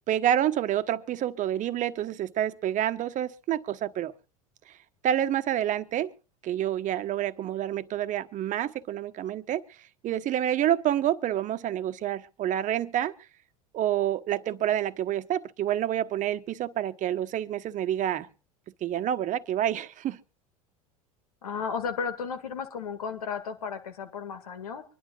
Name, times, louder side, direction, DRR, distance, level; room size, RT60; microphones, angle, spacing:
voice 1, 0.1-4.1 5.0-6.1 6.4-9.6 10.0-13.1 13.7-18.3 18.8-20.2, right 11 dB, 45° right, 1.1 m, -28 dB
voice 2, 21.4-24.8, left 6 dB, 85° left, 2.0 m, -34 dB
24.5 x 11.5 x 2.4 m
hypercardioid pair, 85°, 18 cm